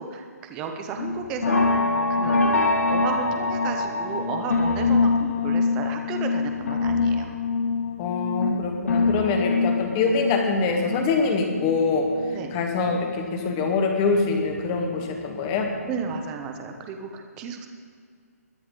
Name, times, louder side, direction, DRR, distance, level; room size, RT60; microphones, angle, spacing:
voice 1, 0.0-1.7 2.1-2.5 2.9-7.3 12.3-12.5 15.8-17.7, right 5 dB, 10° right, 5 dB, 0.5 m, -33 dB
sound 1, 1.0-13.1 13.5-15.1 15.5-15.8 16.1-16.2, left 3 dB, 65° left, 1.8 m, -25 dB
voice 2, 8.0-12.1 12.5-15.7, left 4 dB, 15° left, 3 dB, 1.0 m, -24 dB
21.0 x 9.8 x 3.7 m, 2.2 s
hypercardioid pair, 180°, 9 cm